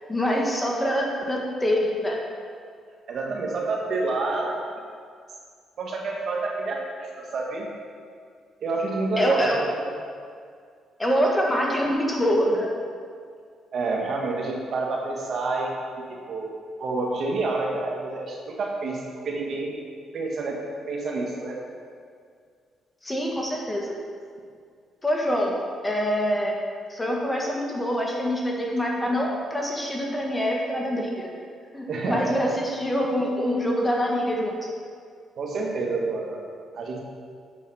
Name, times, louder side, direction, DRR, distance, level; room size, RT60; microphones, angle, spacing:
voice 1, 0.1-2.2 9.2-9.6 11.0-12.7 23.0-23.9 25.0-25.5 25.8-26.6 26.9-31.3 31.7-34.7, equal, 15° left, -1 dB, 1.6 m, -25 dB
voice 2, 3.1-4.6 5.8-6.8 7.2-7.7 8.6-9.6 13.7-15.7 16.3-16.5 16.8-19.0 19.3-19.7 20.1-20.6 20.9-21.6 29.0-29.2 31.9-32.3 35.4-36.4 36.7-37.0, right 3 dB, 60° right, -1 dB, 1.7 m, -28 dB
8.5 x 6.3 x 5.7 m, 2.1 s
cardioid pair, 90°, 0 cm